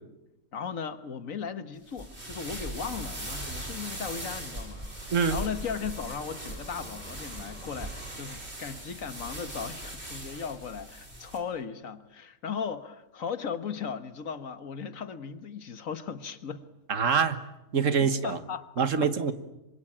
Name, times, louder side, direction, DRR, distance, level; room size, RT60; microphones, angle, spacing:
voice 1, 0.5-16.7 18.0-18.7 19.0-19.1, left 6 dB, 75° left, 1.8 m, -37 dB
sound 1, 1.9-11.4, right 1 dB, 50° right, 4.8 m, -40 dB
sound 2, 2.8-8.2, equal, 5° left, 5.5 m, -50 dB
voice 2, 16.9-17.4 17.7-18.4 18.8-19.3, right 6 dB, 70° right, 1.7 m, -25 dB
26.5 x 24.5 x 8.8 m
omnidirectional pair, 1.4 m